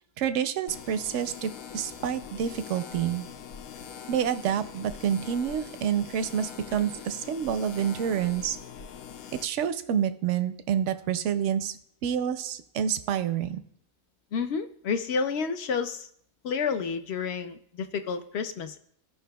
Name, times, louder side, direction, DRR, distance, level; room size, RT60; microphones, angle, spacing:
voice 1, 0.2-3.2 4.1-8.6 9.4-13.6, right 9 dB, 65° right, 12 dB, 0.8 m, -28 dB
sound 1, 0.7-9.5, left 8 dB, 80° left, 1.0 m, -43 dB
voice 2, 14.3-16.1 16.4-18.8, left 5 dB, 60° left, 9 dB, 0.7 m, -30 dB
16.0 x 5.6 x 2.3 m, 0.66 s
omnidirectional pair, 1.5 m